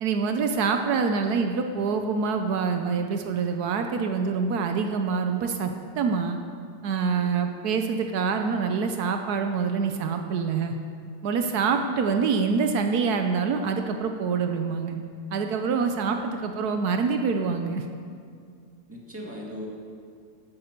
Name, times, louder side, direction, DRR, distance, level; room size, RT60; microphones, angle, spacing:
voice 1, 0.0-6.4 6.8-10.7 11.2-15.0 15.3-17.8, right 5 dB, 80° right, 5 dB, 1.2 m, -26 dB
voice 2, 18.9-19.7, equal, 10° right, -3 dB, 1.9 m, -40 dB
11.5 x 8.6 x 6.6 m, 2.2 s
omnidirectional pair, 1.7 m